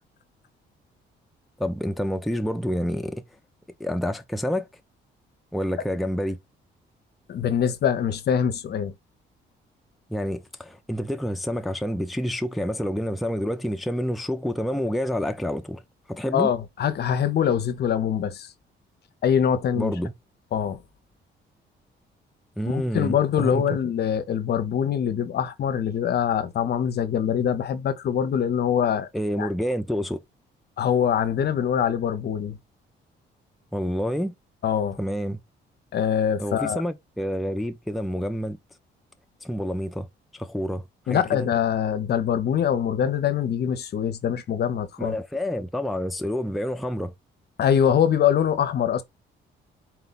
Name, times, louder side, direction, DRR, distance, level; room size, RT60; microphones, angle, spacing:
voice 1, 1.6-3.2 3.8-4.7 5.5-6.4 10.1-15.8 16.1-16.5 19.8-20.1 22.6-23.8 29.1-30.2 33.7-34.3 35.0-35.4 36.4-38.6 39.4-40.1 40.3-41.5 45.0-47.1, equal, ahead, 0.4 m, -28 dB
voice 2, 7.3-8.9 16.3-18.5 19.2-19.9 20.5-20.8 22.7-29.1 29.4-29.5 30.8-32.6 34.6-35.0 35.9-36.8 41.1-45.2 47.6-49.0, left 8 dB, 55° left, 0.6 m, -23 dB
4.3 x 2.1 x 3.9 m
cardioid pair, 90°, 20 cm